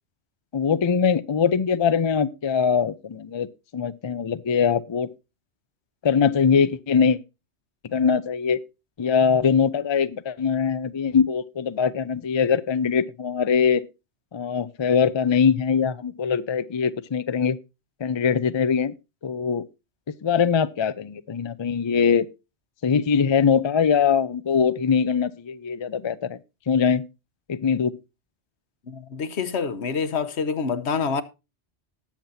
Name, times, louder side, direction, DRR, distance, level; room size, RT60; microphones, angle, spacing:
voice 1, 0.5-3.5 3.7-5.1 6.0-7.2 7.9-8.6 9.0-13.8 14.3-17.6 18.0-18.9 19.2-19.7 20.1-22.3 22.8-26.4 26.7-27.0 27.5-28.0, left 6 dB, 40° left, 0.4 m, -22 dB
voice 2, 28.9-31.2, left 5 dB, 75° left, 1.2 m, -27 dB
19.5 x 7.3 x 2.7 m
omnidirectional pair, 1.2 m